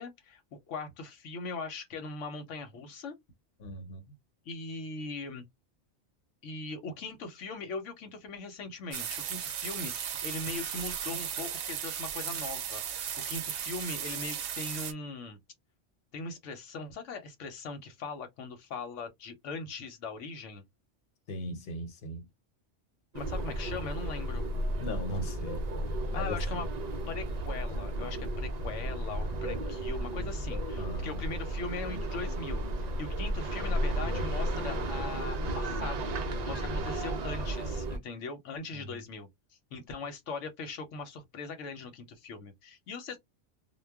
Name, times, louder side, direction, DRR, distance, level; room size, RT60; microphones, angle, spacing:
voice 1, 0.0-3.2 4.5-5.4 6.4-15.4 16.1-20.6 23.1-24.5 26.1-26.7 27.1-32.7 33.0-39.3 39.7-43.2, left 4 dB, 85° left, 1.0 m, -40 dB
voice 2, 3.6-4.0 21.3-22.2 24.8-25.7 26.1-26.6 29.2-29.5 30.7-31.3 38.7-39.0, equal, 60° left, 1.0 m, -39 dB
sound 1, 8.9-14.9, right 9 dB, 70° right, 0.8 m, -36 dB
sound 2, 23.1-38.0, right 1 dB, 55° right, 0.4 m, -33 dB
2.2 x 2.1 x 3.3 m
omnidirectional pair, 1.2 m